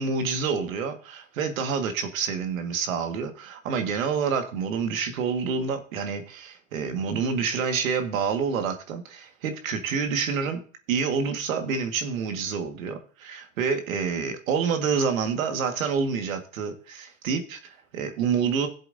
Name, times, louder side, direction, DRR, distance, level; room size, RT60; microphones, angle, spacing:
voice 1, 0.0-10.6 10.9-18.7, right 6 dB, 75° right, 6 dB, 1.8 m, -28 dB
17.5 x 7.6 x 2.7 m, 0.41 s
hypercardioid pair, 130°, 41 cm